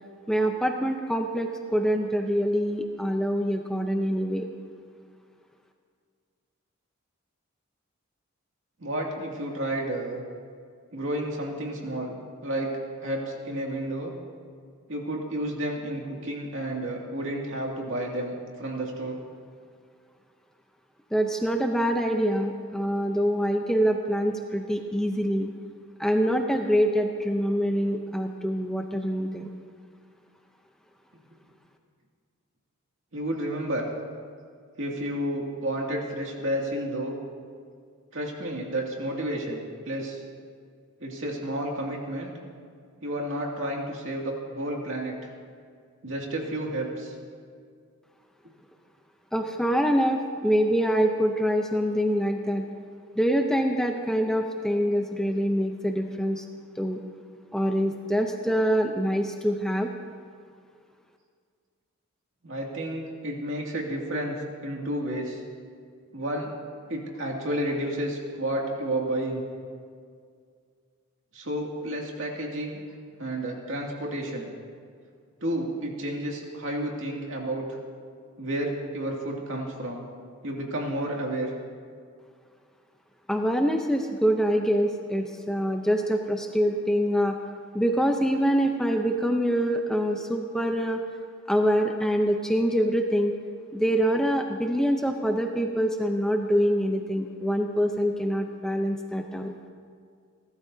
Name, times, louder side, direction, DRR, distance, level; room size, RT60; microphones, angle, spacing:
voice 1, 0.3-4.5 21.1-25.5 26.0-29.5 49.3-52.6 53.2-56.4 56.8-57.0 57.5-59.9 83.3-87.4 87.7-91.0 91.5-93.3 93.7-99.5, equal, 5° left, 3 dB, 0.6 m, -25 dB
voice 2, 8.8-10.2 10.9-12.1 12.4-14.1 14.9-19.2 33.1-33.9 34.8-37.2 38.1-40.2 41.0-42.3 43.0-45.3 46.0-47.1 62.4-64.4 64.6-65.4 66.1-66.5 66.9-69.4 71.3-72.8 73.2-74.5 75.4-77.7 78.4-80.0 80.4-81.5, right 1 dB, 65° right, -1 dB, 2.4 m, -31 dB
30.0 x 13.0 x 2.8 m, 2.1 s
head